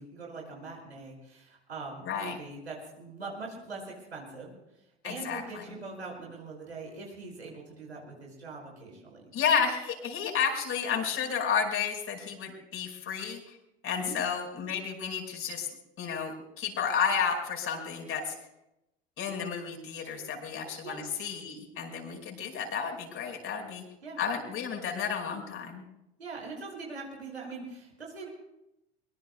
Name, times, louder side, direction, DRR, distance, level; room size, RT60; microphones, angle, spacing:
voice 1, 0.0-4.5 5.0-9.3 13.9-14.2 20.8-21.0 24.0-24.2 26.2-28.3, right 3 dB, 85° right, -1 dB, 5.3 m, -42 dB
voice 2, 2.0-2.4 5.0-5.6 9.3-13.4 13.8-15.7 16.0-18.3 19.2-23.8 24.2-25.8, left 6 dB, 40° left, 1 dB, 5.1 m, -31 dB
23.0 x 23.0 x 2.3 m, 0.87 s
figure-of-eight pair, 75°, 32 cm